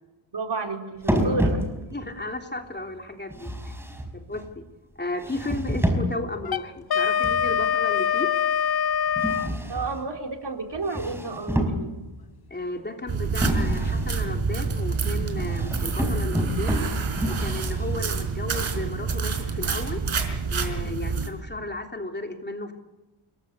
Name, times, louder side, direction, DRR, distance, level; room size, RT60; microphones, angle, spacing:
voice 1, 0.3-1.9 2.2-2.3 9.7-12.0, right 3 dB, 55° right, 3 dB, 4.2 m, -31 dB
sound 1, 1.0-2.1 3.3-4.5 5.2-6.3 7.2-7.7 9.2-10.1 10.7-12.2 13.4-14.2 15.3-18.1, equal, 5° right, 5.2 m, -28 dB
voice 2, 1.9-3.7 4.1-4.6 4.9-8.3 12.5-16.9 17.3-20.0 20.5-22.7, left 2 dB, 20° left, 3 dB, 3.2 m, -34 dB
Wind instrument woodwind instrument, 6.4-9.5, left 8 dB, 50° left, 0.9 m, -24 dB
sound 2, 13.1-21.3, right 5 dB, 75° right, 4.8 m, -27 dB
29.5 x 22.5 x 8.4 m, 1.1 s
wide cardioid pair, 145°, 49 cm